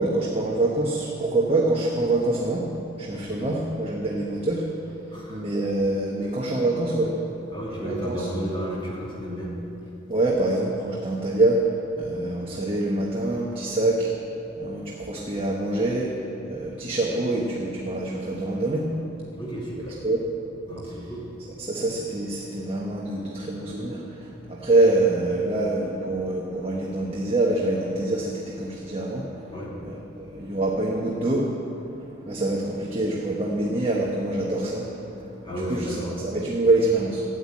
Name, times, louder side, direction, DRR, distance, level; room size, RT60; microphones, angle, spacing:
voice 1, 0.0-2.7 3.0-4.7 5.1-7.3 7.8-8.5 10.1-14.2 14.6-18.9 20.0-20.2 21.0-21.1 21.6-29.5 29.8-35.9 36.2-37.2, right 2 dB, 30° right, -3 dB, 1.3 m, -25 dB
voice 2, 5.1-5.4 7.5-9.5 19.3-20.0 20.6-21.5 29.5-29.7 35.4-36.2, equal, 25° left, -5 dB, 2.7 m, -33 dB
14.0 x 9.1 x 8.5 m, 2.8 s
head